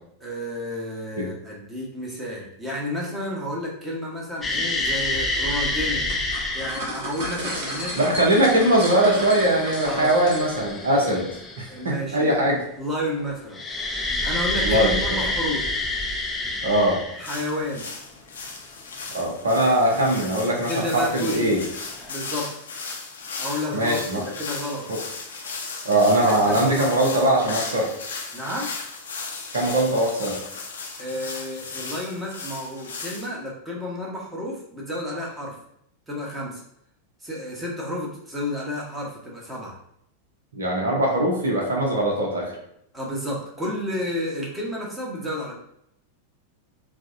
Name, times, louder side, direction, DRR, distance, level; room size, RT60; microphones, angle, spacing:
voice 1, 0.2-6.1 6.5-8.3 9.8-10.1 10.9-11.3 11.7-12.3 12.8-13.6 14.2-15.6 17.2-17.9 19.9-20.0 20.7-21.5 22.1-22.5 23.4-24.8 26.1-27.2 28.3-28.7 31.0-35.5 36.1-36.6 37.2-39.7 42.9-45.5, left 1 dB, 15° right, -3 dB, 1.0 m, -31 dB
sound 1, 4.4-6.9 8.1-11.9 13.5-17.5 20.5-20.6 21.7-22.1, left 2 dB, 15° left, 0.4 m, -28 dB
sound 2, 6.1-10.8, equal, 50° right, 1.1 m, -33 dB
voice 2, 7.9-11.2 11.8-12.6 14.6-15.3 16.6-17.0 19.1-21.6 23.7-24.2 24.9-25.0 25.8-27.9 29.5-30.4 40.6-42.5, right 1 dB, 65° right, -1 dB, 0.7 m, -21 dB
sound 3, 17.2-33.3, left 4 dB, 65° left, 0.6 m, -36 dB
4.8 x 2.1 x 2.5 m, 0.73 s
figure-of-eight pair, 90°, 0 cm